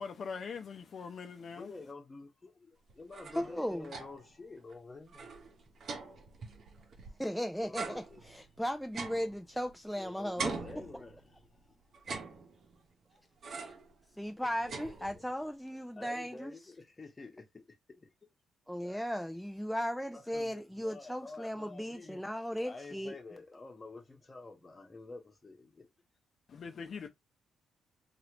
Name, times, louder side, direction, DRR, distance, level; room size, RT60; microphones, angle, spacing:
voice 1, 0.0-1.7 26.5-27.1, left 5 dB, 55° left, 0.6 m, -42 dB
voice 2, 1.5-5.4 7.6-8.3 10.0-11.8 14.4-15.1 16.0-18.1 18.8-19.0 20.1-22.2 22.6-25.9, left 3 dB, 25° left, 1.2 m, -49 dB
sound 1, 2.9-4.4 4.7-4.8 5.1-7.3 7.7-10.0 10.4-11.5 11.9-12.9 13.4-13.9 14.3-15.4, right 4 dB, 55° right, 0.9 m, -43 dB
voice 3, 3.3-3.9 7.2-10.6 10.9-11.0 13.6-13.7 14.2-16.5 18.7-23.2, equal, ahead, 0.4 m, -36 dB
3.2 x 2.5 x 3.0 m
cardioid pair, 90°, 0 cm